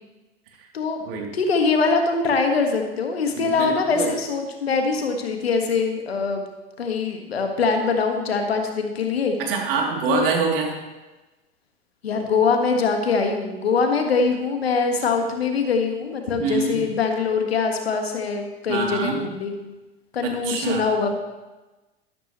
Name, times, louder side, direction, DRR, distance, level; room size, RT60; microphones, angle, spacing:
voice 1, 1.3-6.4 6.8-9.3 10.1-10.2 12.0-19.8 20.1-21.1, left 4 dB, 85° left, 4 dB, 1.7 m, -23 dB
voice 2, 3.4-4.1 9.4-10.8 16.4-16.8 18.7-19.2 20.2-20.8, right 5 dB, 65° right, 0 dB, 3.1 m, -25 dB
13.0 x 12.5 x 3.1 m, 1.1 s
hypercardioid pair, 90°, 30 cm